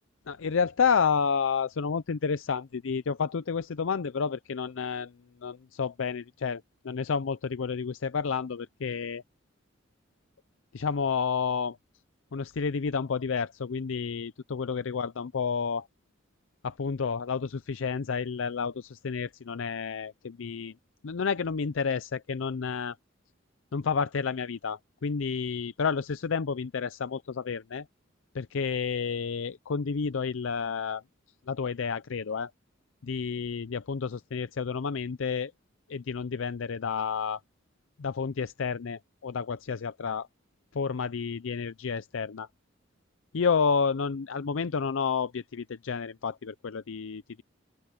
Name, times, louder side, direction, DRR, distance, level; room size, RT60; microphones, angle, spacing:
voice 1, 0.3-5.1 5.4-9.2 10.7-11.8 12.3-15.9 16.6-20.7 21.0-23.0 23.7-27.9 28.3-31.0 31.5-32.5 33.0-35.5 35.9-37.4 38.0-40.3 40.7-42.5 43.3-47.4, left 5 dB, 80° left, 0.5 m, -30 dB
open air
head